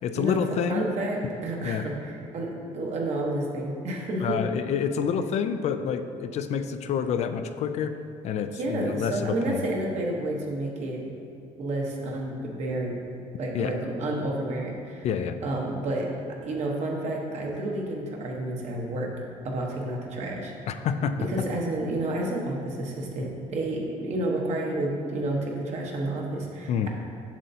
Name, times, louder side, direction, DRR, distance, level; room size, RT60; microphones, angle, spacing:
voice 1, 0.0-0.9 1.6-1.8 4.2-8.0 8.2-9.6 13.5-13.8 15.0-15.4 20.7-21.3 26.7-26.9, left 7 dB, 55° left, 9 dB, 0.4 m, -28 dB
voice 2, 0.7-4.4 8.5-11.1 11.6-13.0 13.4-15.1 15.4-16.2 16.4-19.1 19.4-20.5 21.3-26.9, right 1 dB, 60° right, 0 dB, 1.2 m, -30 dB
7.4 x 6.6 x 2.8 m, 2.7 s
cardioid pair, 115°, 13 cm